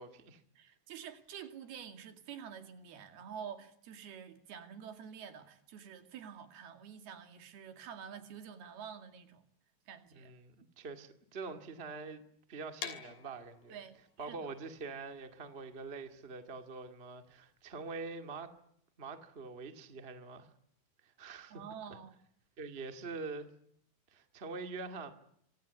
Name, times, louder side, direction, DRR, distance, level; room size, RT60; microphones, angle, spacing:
voice 1, 0.0-0.4 10.1-12.2 12.5-13.8 14.2-18.5 19.0-20.5 21.0-21.6 22.6-23.5 24.1-25.1, right 4 dB, 25° right, 1.4 m, -44 dB
voice 2, 0.6-9.4 9.9-10.3 13.7-14.5 21.5-22.2, right 8 dB, 70° right, 4.1 m, -48 dB
sound 1, 12.8-18.6, left 8 dB, 65° left, 4.7 m, -49 dB
26.0 x 25.5 x 8.3 m
omnidirectional pair, 4.6 m